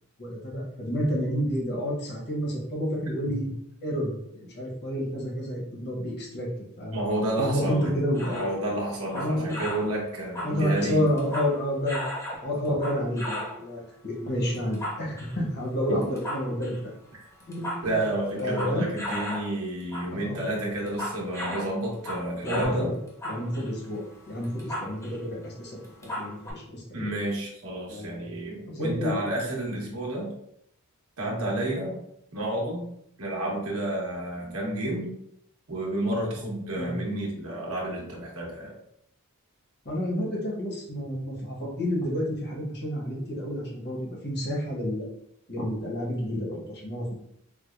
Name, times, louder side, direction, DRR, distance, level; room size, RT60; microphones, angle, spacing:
voice 1, 0.2-3.5 3.8-6.5 6.8-7.0 7.4-8.5 9.1-9.6 10.4-12.0 12.4-16.8 17.5-18.0 18.3-18.9 20.0-20.4 22.4-22.9 23.2-25.8 26.0-27.1 27.9-28.3 28.6-29.2 36.7-37.0 39.8-45.1 45.5-47.1, equal, 50° left, -3 dB, 1.0 m, -30 dB
voice 2, 6.9-8.0 8.3-11.1 15.9-16.1 17.8-22.9 26.9-30.3 31.2-32.0 32.3-32.9 33.2-35.1 35.7-38.7, right 1 dB, 70° right, -3 dB, 1.1 m, -30 dB
sound 1, 7.8-8.6 9.0-9.9 10.2-11.6 11.9-13.6 14.5-15.4 16.0-16.8 17.3-19.5 19.8-20.1 20.4-22.8 23.1-25.2 25.4-25.5 25.8-26.5, equal, 15° left, 0.7 m, -35 dB
4.7 x 2.1 x 2.4 m, 0.73 s
head